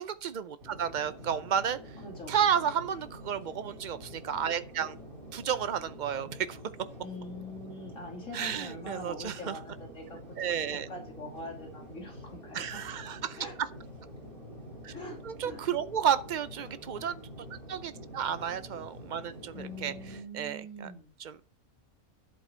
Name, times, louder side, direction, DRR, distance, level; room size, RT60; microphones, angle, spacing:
voice 1, 0.0-1.8 2.3-5.0 5.3-6.6 8.3-9.6 10.4-10.9 12.5-13.7 14.8-14.9 15.2-19.9 20.3-20.9 21.2-21.3, right 8 dB, 90° right, 0.4 m, -32 dB
sound 1, 0.6-20.2, equal, 35° right, 3.3 m, -47 dB
voice 2, 2.0-2.7 7.0-12.8 13.4-13.5 14.9-15.6 16.6-16.8 19.5-21.1, left 1 dB, 60° left, 3.0 m, -44 dB
11.0 x 7.9 x 4.4 m
omnidirectional pair, 1.5 m